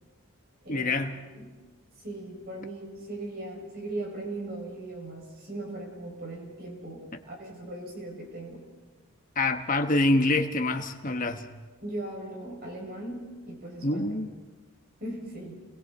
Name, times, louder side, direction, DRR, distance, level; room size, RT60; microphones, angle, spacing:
voice 1, 0.7-1.1 9.4-11.5 13.8-14.3, left 2 dB, 35° left, 6 dB, 1.2 m, -26 dB
voice 2, 2.0-8.7 11.8-14.1 15.0-15.6, right 2 dB, 45° right, 0 dB, 5.8 m, -38 dB
29.5 x 22.0 x 4.2 m, 1.3 s
head